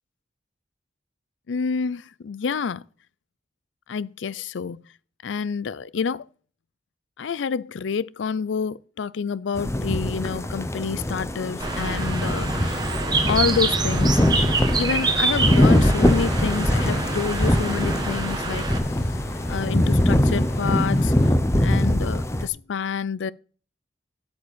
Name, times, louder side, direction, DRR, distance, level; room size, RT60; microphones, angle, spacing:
voice 1, 1.5-2.8 3.9-4.8 5.2-6.3 7.2-13.0 13.3-14.2 14.8-18.7 19.5-21.1 21.6-23.3, left 6 dB, 85° left, 0.4 m, -28 dB
sound 1, 9.6-22.5, left 1 dB, 15° left, 0.9 m, -22 dB
Bird, 11.6-18.8, right 3 dB, 25° right, 1.6 m, -26 dB
sound 2, 12.4-21.3, left 2 dB, 60° left, 2.0 m, -41 dB
8.5 x 7.7 x 7.2 m
head